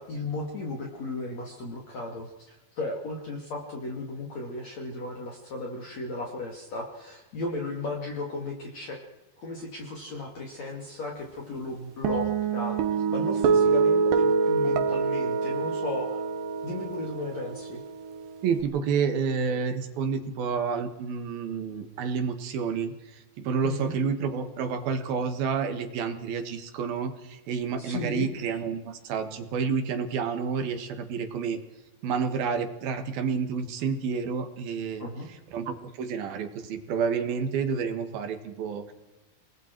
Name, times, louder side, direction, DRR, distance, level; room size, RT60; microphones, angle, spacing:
voice 1, 0.0-9.0 9.4-16.2 16.6-17.8 23.6-24.0 27.8-28.3 35.0-35.3, left 2 dB, 45° left, 0 dB, 3.5 m, -35 dB
Guitar, 12.1-18.6, right 5 dB, 85° right, 3.7 m, -26 dB
voice 2, 18.4-22.9 23.4-31.6 32.0-35.1 35.5-38.9, right 6 dB, 65° right, 8 dB, 3.4 m, -29 dB
29.5 x 20.5 x 4.6 m, 0.99 s
omnidirectional pair, 4.7 m